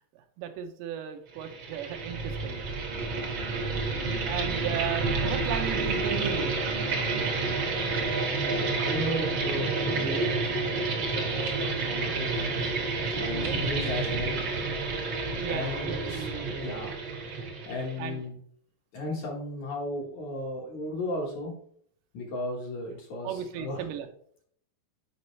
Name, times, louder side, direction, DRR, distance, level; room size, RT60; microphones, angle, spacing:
voice 1, 0.1-3.6 4.0-6.6 13.1-13.6 15.4-16.5 18.0-18.2 23.2-24.1, right 9 dB, 85° right, 5 dB, 2.7 m, -36 dB
sound 1, 1.4-18.1, right 3 dB, 60° right, 1.2 m, -30 dB
voice 2, 8.4-12.5 13.2-14.4 15.5-16.9 17.6-18.3 18.9-21.5 22.1-23.8, left 1 dB, 60° left, -1 dB, 2.2 m, -35 dB
8.6 x 5.3 x 3.1 m, 0.63 s
omnidirectional pair, 4.5 m